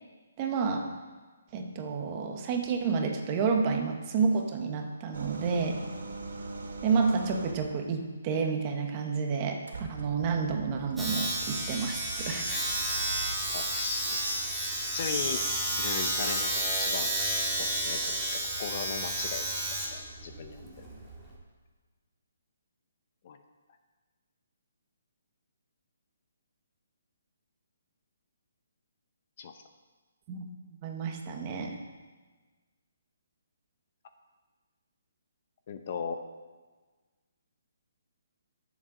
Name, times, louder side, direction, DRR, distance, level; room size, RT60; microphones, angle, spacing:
voice 1, 0.4-0.9 1.5-5.8 6.8-9.6 9.9-12.5 30.3-30.5 30.8-31.8, right 5 dB, 25° right, 4 dB, 1.0 m, -30 dB
sound 1, 5.1-7.7 9.7-13.3, right 3 dB, 75° right, 2.0 m, -41 dB
Domestic sounds home sounds, 11.0-21.4, right 1 dB, ahead, 1.7 m, -31 dB
voice 2, 13.5-14.3 14.9-15.4 15.8-17.1 17.6-19.4 19.9-20.8 23.2-23.4 29.4-29.6 35.7-36.2, left 6 dB, 35° left, 7 dB, 0.7 m, -37 dB
18.0 x 7.3 x 3.9 m, 1.4 s
hypercardioid pair, 170°, 0 cm